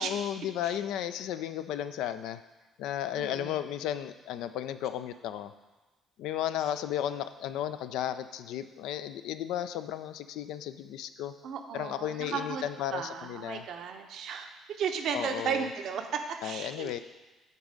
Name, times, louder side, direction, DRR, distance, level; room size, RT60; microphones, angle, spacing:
voice 1, 0.0-2.4 2.8-5.5 6.2-11.3 11.7-13.6 15.1-15.7 16.4-17.0, left 11 dB, 65° left, 11 dB, 0.3 m, -34 dB
voice 2, 3.2-3.5 11.4-17.0, right 7 dB, 60° right, 5 dB, 0.7 m, -35 dB
8.1 x 4.0 x 5.1 m, 1.2 s
figure-of-eight pair, 50°, 0 cm